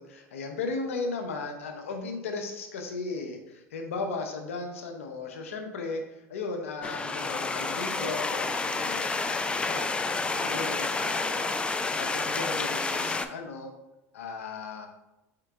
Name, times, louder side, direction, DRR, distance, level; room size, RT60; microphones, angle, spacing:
voice 1, 0.0-6.0 6.3-13.7 14.1-14.9, left 3 dB, 90° left, 4 dB, 0.7 m, -36 dB
sound 1, 6.8-13.3, left 3 dB, 15° left, 0.3 m, -29 dB
3.7 x 3.7 x 3.4 m, 0.96 s
hypercardioid pair, 90°, 7 cm